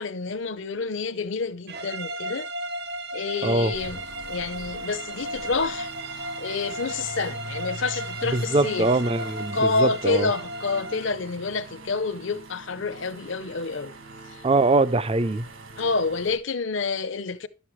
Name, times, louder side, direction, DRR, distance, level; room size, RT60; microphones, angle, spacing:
voice 1, 0.0-2.5 3.1-8.9 9.2-13.9 14.3-14.4 15.8-17.5, left 4 dB, 60° left, 0.7 m, -28 dB
sound 1, 1.7-11.1, right 1 dB, 50° right, 0.9 m, -35 dB
voice 2, 3.4-3.7 8.3-10.3 14.4-15.5, right 2 dB, 25° right, 0.5 m, -22 dB
sound 2, 3.7-16.4, right 2 dB, 65° right, 1.8 m, -42 dB
12.0 x 7.3 x 3.1 m
head